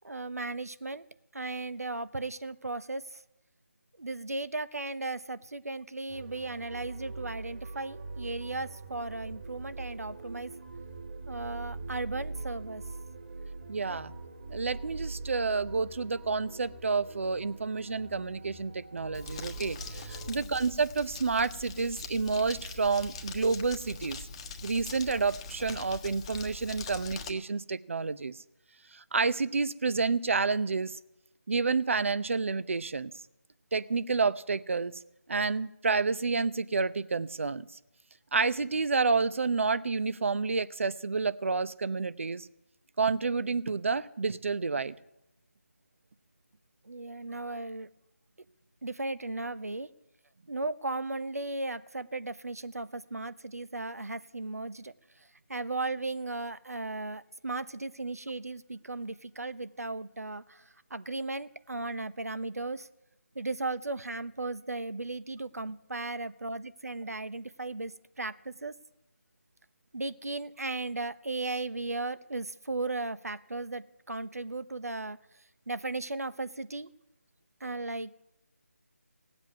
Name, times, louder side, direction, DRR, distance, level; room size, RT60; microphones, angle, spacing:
voice 1, 0.0-1.0 1.3-3.2 4.0-10.5 11.3-12.8 13.9-14.0 20.2-20.5 46.8-47.9 48.8-49.9 50.5-54.9 55.5-60.6 60.9-62.9 63.3-67.9 68.2-68.7 69.9-75.2 75.7-76.9 77.6-78.2, right 2 dB, 75° right, 13 dB, 1.2 m, -36 dB
sound 1, 6.1-20.3, right 3 dB, 40° right, 2.5 m, -43 dB
voice 2, 13.7-14.1 14.5-24.2 24.6-28.4 28.9-31.0 31.5-33.1 33.7-35.0 35.3-37.7 38.3-42.5 43.0-45.0, right 4 dB, 55° right, 16 dB, 0.9 m, -29 dB
Crumpling crinkling, 19.1-27.3, left 3 dB, 25° left, 1.3 m, -42 dB
17.5 x 8.2 x 9.4 m, 0.91 s
figure-of-eight pair, 160°, 8 cm